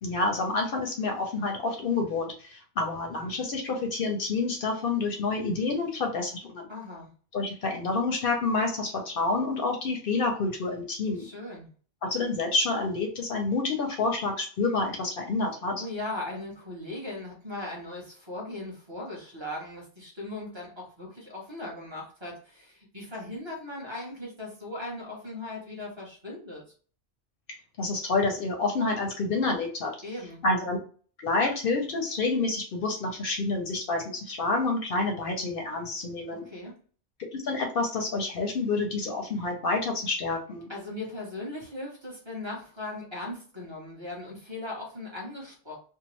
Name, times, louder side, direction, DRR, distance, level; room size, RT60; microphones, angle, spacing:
voice 1, 0.0-6.7 7.3-11.2 12.1-15.8 27.8-29.9 30.4-30.8 31.2-36.4 37.3-40.7, left 3 dB, 60° left, 2 dB, 0.7 m, -28 dB
voice 2, 6.7-7.1 11.2-11.7 15.7-26.6 30.0-30.4 36.4-36.8 40.7-45.8, left 2 dB, 25° right, -5 dB, 0.9 m, -38 dB
2.7 x 2.0 x 3.0 m, 0.42 s
omnidirectional pair, 1.1 m